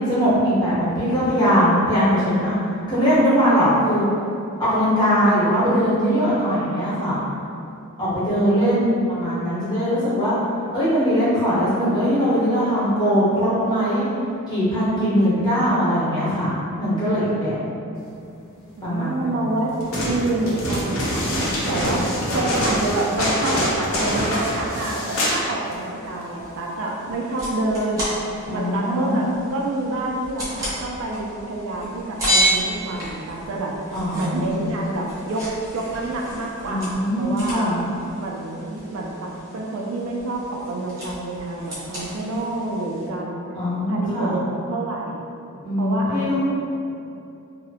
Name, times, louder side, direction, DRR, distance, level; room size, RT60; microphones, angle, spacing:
voice 1, 0.1-2.5 2.9-4.1 4.6-7.2 8.0-8.8 9.1-10.4 10.7-14.1 14.5-17.5 18.8-19.5 28.5-29.2 33.9-34.6 36.7-37.9 43.5-44.4 45.6-46.4, equal, 20° left, -12 dB, 0.9 m, -21 dB
voice 2, 8.6-9.0 18.8-19.7 20.0-21.3 21.7-22.0 22.3-28.0 28.5-33.7 34.1-35.5 35.7-37.7 38.2-43.4 43.9-44.4 44.7-45.2 45.8-46.4, right 2 dB, 65° right, -1 dB, 0.3 m, -28 dB
sound 1, 19.8-25.4 25.7-25.8, equal, 60° left, 0.5 m, -24 dB
sound 2, 25.1-43.1, right 1 dB, 15° right, 0.7 m, -32 dB
2.7 x 2.0 x 2.7 m, 2.7 s
head